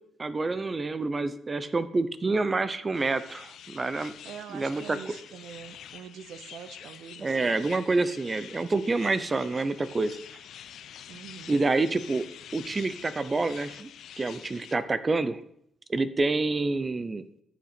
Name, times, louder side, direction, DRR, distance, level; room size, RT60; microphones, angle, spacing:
voice 1, 0.2-4.1 4.5-5.0 7.2-10.2 11.5-12.2 12.5-13.9 14.2-15.4 15.9-17.3, right 3 dB, 25° right, 14 dB, 0.5 m, -27 dB
sound 1, 2.9-14.8, left 9 dB, 70° left, 0.6 m, -47 dB
voice 2, 4.2-7.6 11.1-11.5, right 8 dB, 75° right, 11 dB, 0.7 m, -44 dB
14.0 x 5.7 x 4.3 m, 0.73 s
cardioid pair, 90°, 0 cm